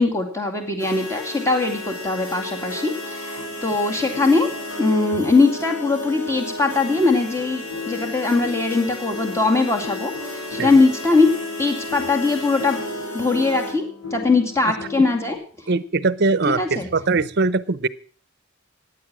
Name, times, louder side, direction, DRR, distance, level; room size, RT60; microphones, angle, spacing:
voice 1, 0.0-4.5 4.8-11.3 11.6-12.8 13.1-13.8 14.1-15.4 16.5-16.9, left 3 dB, 15° left, 2 dB, 2.4 m, -21 dB
sound 1, 0.8-13.7, left 1 dB, 85° left, 5.0 m, -33 dB
sound 2, 3.0-15.3, left 5 dB, 65° left, 7.9 m, -37 dB
voice 2, 15.7-17.9, right 3 dB, 50° right, 17 dB, 0.7 m, -21 dB
15.0 x 10.0 x 6.1 m, 0.43 s
head